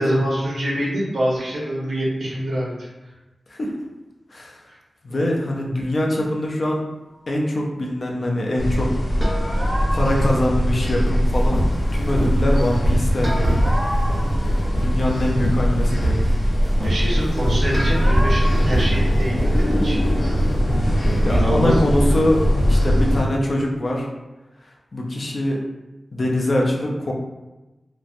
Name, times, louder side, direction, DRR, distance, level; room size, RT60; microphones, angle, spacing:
voice 1, 0.0-2.9 16.8-20.0 20.2-20.3 21.0-21.8, equal, 85° right, -5 dB, 0.8 m, -25 dB
voice 2, 4.3-4.6 5.0-6.8 7.3-13.4 14.4-16.2 21.2-24.1 24.9-25.6 26.1-27.1, left 1 dB, 50° left, -1 dB, 0.5 m, -23 dB
sound 1, 8.6-23.2, equal, 85° left, 0.9 m, -21 dB
sound 2, 9.2-10.5 13.2-15.1 17.7-18.5, equal, 30° right, 0.6 m, -29 dB
sound 3, 11.2-23.5, equal, 15° left, 0.7 m, -25 dB
3.0 x 2.1 x 2.5 m, 1.1 s
wide cardioid pair, 110°, 0 cm